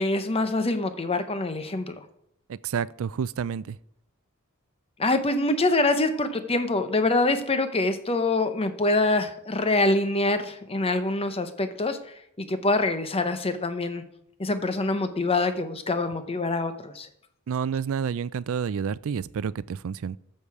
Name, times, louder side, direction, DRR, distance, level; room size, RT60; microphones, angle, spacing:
voice 1, 0.0-2.0 5.0-12.0 12.4-14.0 14.4-17.1, left 2 dB, 25° left, 9 dB, 0.8 m, -25 dB
voice 2, 2.5-3.8 17.5-20.2, right 7 dB, 65° right, 19 dB, 0.4 m, -29 dB
14.0 x 6.7 x 4.8 m, 0.76 s
head